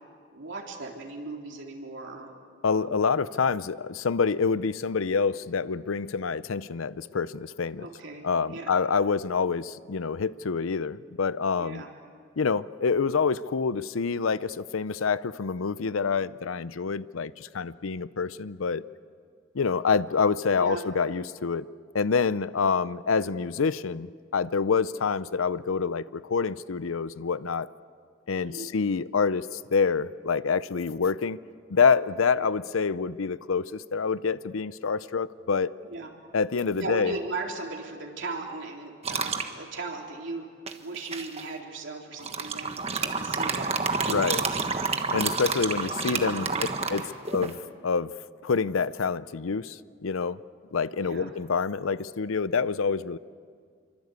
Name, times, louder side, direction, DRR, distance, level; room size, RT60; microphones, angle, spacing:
voice 1, 0.3-2.3 2.7-3.0 7.8-8.8 9.1-9.2 11.6-11.9 20.6-20.9 28.3-28.7 32.4-32.5 35.8-36.1 36.8-40.5 40.8-43.7 44.0-44.5 45.7-46.6 47.0-47.2 51.0-51.3, right 3 dB, 65° right, 0 dB, 3.6 m, -38 dB
voice 2, 2.6-7.9 8.2-11.8 12.4-18.8 19.5-21.7 21.9-27.7 28.3-31.4 31.7-35.7 36.3-37.1 44.1-44.4 45.1-46.5 46.9-48.1 48.4-50.4 50.7-53.2, left 5 dB, 85° left, 16 dB, 0.6 m, -27 dB
sound 1, 39.0-39.5 40.7-41.4 42.2-47.5, right 4 dB, 30° right, 1.3 m, -29 dB
27.5 x 24.5 x 8.2 m, 2.1 s
head